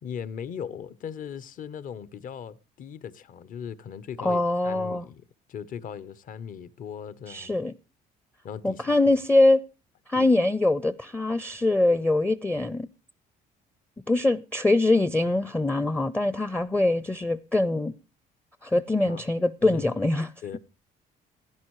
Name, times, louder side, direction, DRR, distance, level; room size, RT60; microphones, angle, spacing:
voice 1, 0.0-7.6 8.4-9.2 10.1-10.3 19.1-19.2 19.6-19.8 20.4-20.6, left 8 dB, 55° left, 0.9 m, -38 dB
voice 2, 4.2-5.0 7.3-7.7 8.6-9.6 10.1-12.9 14.1-17.9 18.6-20.3, left 2 dB, 10° left, 0.5 m, -23 dB
16.0 x 10.5 x 3.1 m
cardioid pair, 110°, 17 cm